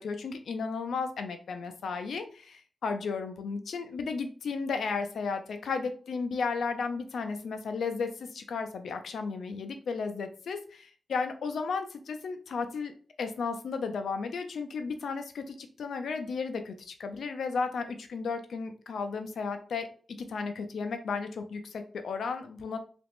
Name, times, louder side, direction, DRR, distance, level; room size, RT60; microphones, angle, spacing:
voice 1, 0.0-12.9 13.2-19.9 20.2-22.8, left 4 dB, 80° left, 7 dB, 0.4 m, -34 dB
3.4 x 3.0 x 2.5 m, 0.43 s
cardioid pair, 55°, 0 cm